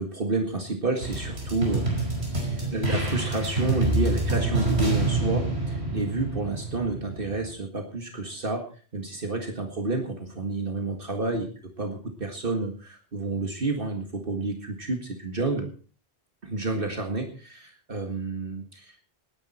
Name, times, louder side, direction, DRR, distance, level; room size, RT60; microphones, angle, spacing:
voice 1, 0.0-2.0 2.4-8.6 8.9-11.5 11.8-15.7 16.4-18.9, right 2 dB, 60° right, 3 dB, 2.0 m, -30 dB
sound 1, 1.0-7.5, right 2 dB, 85° right, 5.4 m, -27 dB
19.0 x 10.5 x 4.3 m, 0.39 s
omnidirectional pair, 1.1 m